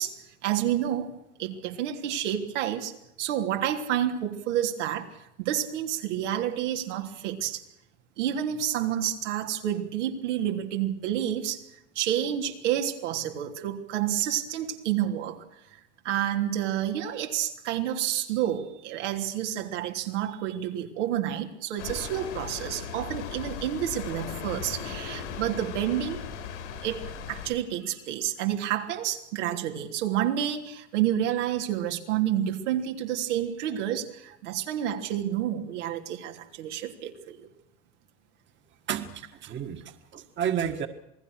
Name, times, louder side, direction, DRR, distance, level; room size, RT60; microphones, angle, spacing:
voice 1, 0.0-7.6 8.2-11.6 11.9-15.8 16.0-26.2 26.8-37.5, right 11 dB, 85° right, 3 dB, 3.3 m, -29 dB
sound 1, 21.8-27.5, left 7 dB, 90° left, 6.6 m, -37 dB
voice 2, 38.9-40.9, right 9 dB, 30° right, 7 dB, 1.8 m, -31 dB
28.0 x 19.0 x 6.4 m, 0.83 s
supercardioid pair, 135°, 35 cm